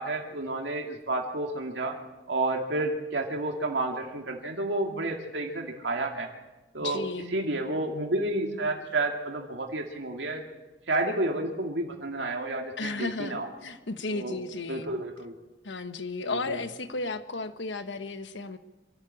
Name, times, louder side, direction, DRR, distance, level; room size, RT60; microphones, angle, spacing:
voice 1, 0.0-2.0 2.3-6.3 6.7-10.4 10.9-13.5 14.1-14.4 14.7-15.3 16.2-16.6, right 2 dB, 80° right, 2 dB, 2.3 m, -30 dB
voice 2, 6.8-7.4 12.8-15.0 15.6-18.6, left 3 dB, 90° left, 10 dB, 1.3 m, -34 dB
26.0 x 12.0 x 8.6 m, 1.1 s
head